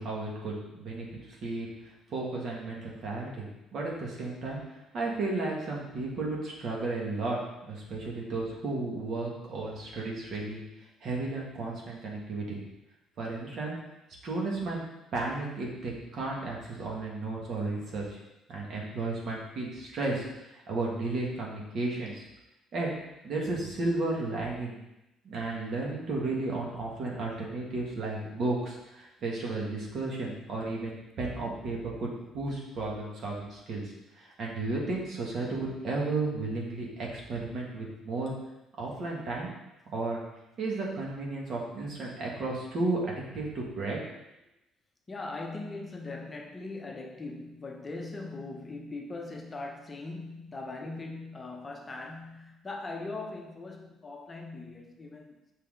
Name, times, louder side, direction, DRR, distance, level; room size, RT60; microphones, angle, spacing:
voice 1, 0.0-1.7 2.1-3.5 3.7-4.6 4.9-7.4 7.7-10.6 11.0-12.6 13.2-13.8 14.2-14.8 15.1-18.2 18.5-22.2 22.7-22.9 23.2-24.8 25.2-38.3 38.8-39.5 39.9-40.2 40.6-44.0, right 2 dB, 55° right, -2 dB, 2.0 m, -33 dB
voice 2, 45.1-55.5, left 3 dB, 25° left, 1 dB, 0.9 m, -40 dB
6.3 x 5.5 x 3.9 m, 0.93 s
cardioid pair, 110°, 0 cm